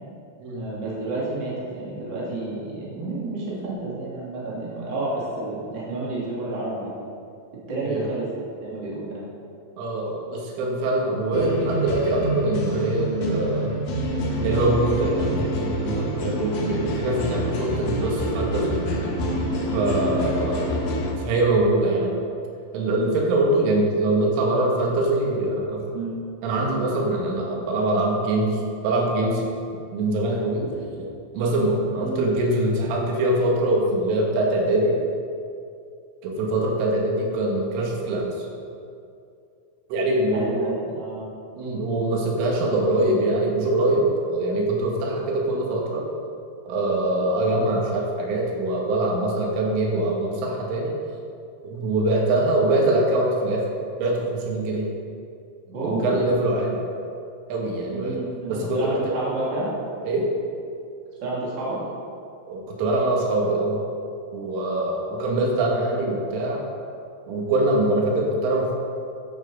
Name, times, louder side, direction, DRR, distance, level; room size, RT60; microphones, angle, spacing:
voice 1, 0.5-6.9 7.7-9.2 25.9-26.2 32.0-32.3 40.3-41.3 55.7-56.2 57.9-59.7 61.2-61.8, right 2 dB, 30° right, -7 dB, 2.7 m, -30 dB
voice 2, 9.8-13.8 14.4-18.7 19.7-20.8 21.2-22.1 22.7-25.9 26.4-29.5 29.9-30.7 31.0-31.1 31.3-35.0 36.2-38.5 39.9-40.7 41.6-46.1 46.7-50.9 51.6-53.7 54.0-54.9 55.8-56.8 57.5-58.2 58.5-59.1 60.1-60.4 62.5-63.8 64.3-66.6 67.3-68.7, right 2 dB, 90° right, -1 dB, 4.2 m, -23 dB
sound 1, 11.3-21.1, equal, 70° left, 1.7 m, -27 dB
10.5 x 9.2 x 5.4 m, 2.4 s
omnidirectional pair, 5.5 m